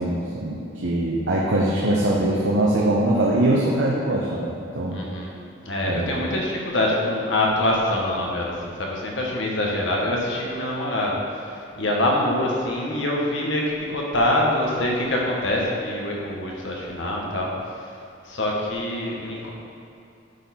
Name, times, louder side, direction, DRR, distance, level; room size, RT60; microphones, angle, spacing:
voice 1, 0.0-5.0 5.8-6.2, right 1 dB, 70° right, -5 dB, 0.8 m, -22 dB
voice 2, 4.9-5.4 5.6-11.5 11.8-17.5 18.2-19.5, left 1 dB, 75° left, -2 dB, 1.2 m, -25 dB
9.8 x 4.2 x 4.3 m, 2.5 s
head